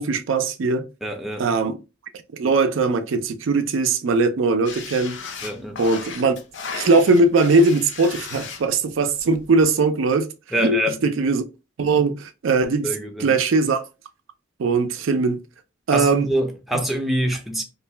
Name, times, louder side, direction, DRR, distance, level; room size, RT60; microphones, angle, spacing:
voice 1, 0.0-0.9 1.4-1.8 2.3-5.2 5.8-6.3 6.7-10.3 10.6-11.4 11.8-12.9 13.2-13.8 14.6-15.4 15.9-16.3, right 3 dB, 85° right, 0.4 m, -20 dB
voice 2, 1.0-1.6 5.4-5.8 10.5-11.0 12.8-13.4 15.9-17.6, equal, ahead, 0.4 m, -25 dB
sound 1, 4.6-9.7, left 5 dB, 65° left, 0.5 m, -36 dB
2.5 x 2.1 x 3.2 m
head